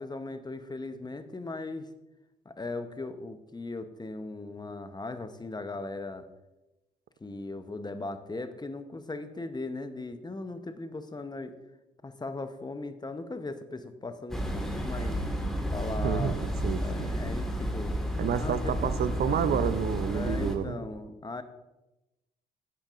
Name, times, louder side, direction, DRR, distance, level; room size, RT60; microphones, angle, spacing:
voice 1, 0.0-1.9 2.4-6.3 7.2-11.5 12.0-15.2 15.7-16.3 16.8-18.0 18.4-18.8 20.1-21.4, left 2 dB, 20° left, 9 dB, 1.0 m, -38 dB
sound 1, 14.3-20.6, equal, ahead, 1.9 m, -31 dB
voice 2, 16.0-17.1 18.2-20.8, right 8 dB, 55° right, 12 dB, 0.7 m, -30 dB
12.5 x 8.7 x 2.6 m, 0.99 s
hypercardioid pair, 50°, 19 cm